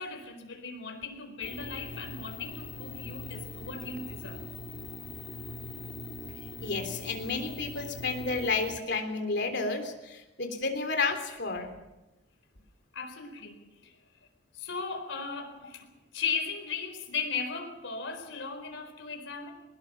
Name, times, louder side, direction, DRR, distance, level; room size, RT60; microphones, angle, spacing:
voice 1, 0.0-4.4 12.9-14.0 14.5-19.5, left 5 dB, 85° left, 4.3 m, -37 dB
sound 1, 1.4-8.8, left 2 dB, 45° left, 1.9 m, -42 dB
voice 2, 6.6-11.8, left 3 dB, 60° left, 3.5 m, -31 dB
23.0 x 20.0 x 6.1 m
head